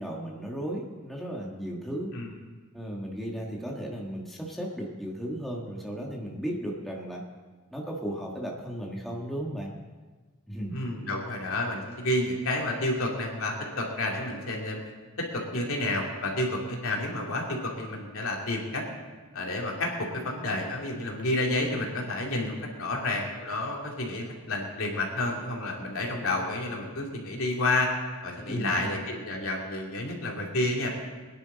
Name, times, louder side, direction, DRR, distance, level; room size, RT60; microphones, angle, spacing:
voice 1, 0.0-2.1 2.7-7.2 7.7-9.7 10.5-10.8 12.7-12.8 22.9-23.0 28.5-28.9, equal, ahead, -2 dB, 1.6 m, -35 dB
voice 2, 10.7-14.8 15.2-18.8 19.3-27.9 28.2-30.9, left 2 dB, 70° left, -1 dB, 2.7 m, -30 dB
22.0 x 10.5 x 4.1 m, 1.4 s
head